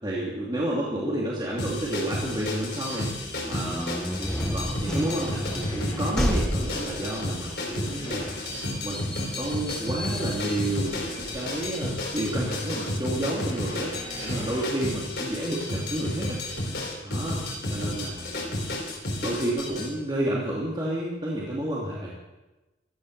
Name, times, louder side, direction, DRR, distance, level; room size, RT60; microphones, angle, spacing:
voice 1, 0.0-3.1 3.4-4.1 4.5-8.3 8.8-13.9 14.2-16.4 17.0-17.4 17.7-18.7 19.2-22.2, right 1 dB, 25° right, -5 dB, 2.6 m, -30 dB
sound 1, 1.6-19.9, left 1 dB, 65° left, 3.9 m, -32 dB
sound 2, 3.3-11.9, equal, 5° left, 0.8 m, -33 dB
sound 3, 5.6-6.7 7.4-8.9 9.5-10.4 10.8-14.7, left 1 dB, 35° left, 3.3 m, -44 dB
15.5 x 13.0 x 6.6 m, 1.1 s
head